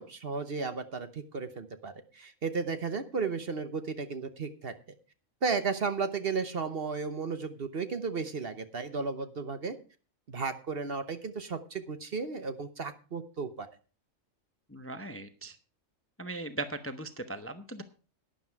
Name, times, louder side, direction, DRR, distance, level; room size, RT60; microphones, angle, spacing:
voice 1, 0.0-4.7 5.4-9.8 10.3-13.7, right 4 dB, 50° right, 10 dB, 1.1 m, -34 dB
voice 2, 14.7-15.6 16.2-17.8, right 2 dB, 10° left, 9 dB, 0.7 m, -38 dB
12.0 x 10.0 x 4.7 m, 0.36 s
omnidirectional pair, 1.4 m